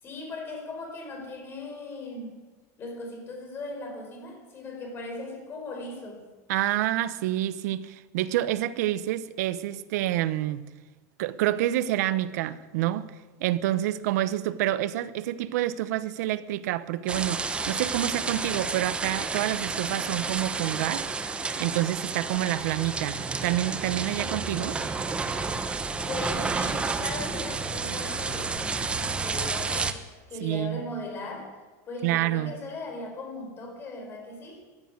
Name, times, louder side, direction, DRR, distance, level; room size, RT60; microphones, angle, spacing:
voice 1, 0.0-2.4 2.8-6.2 26.0-30.0 30.3-31.5 31.9-34.6, left 2 dB, 25° left, 4.5 m, -38 dB
voice 2, 6.5-10.7 11.2-13.1 13.4-21.1 21.6-24.8 30.4-30.8 32.0-32.5, right 14 dB, 70° right, 0.9 m, -28 dB
sound 1, 17.1-29.9, right 4 dB, 10° right, 0.9 m, -30 dB
14.5 x 10.5 x 9.4 m
supercardioid pair, 160°, 9 cm